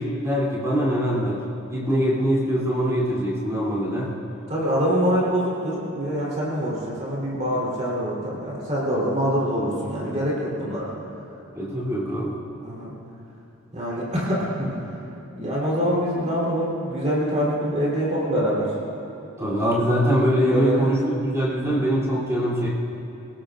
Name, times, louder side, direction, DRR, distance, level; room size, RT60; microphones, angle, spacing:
voice 1, 0.0-4.2 11.5-12.4 19.4-22.7, equal, 15° right, -7 dB, 3.2 m, -23 dB
voice 2, 4.5-10.9 12.6-12.9 13.7-14.7 15.3-18.7 20.5-20.9 21.6-21.9, equal, 30° right, -7 dB, 3.9 m, -25 dB
28.0 x 18.5 x 2.6 m, 2.8 s
head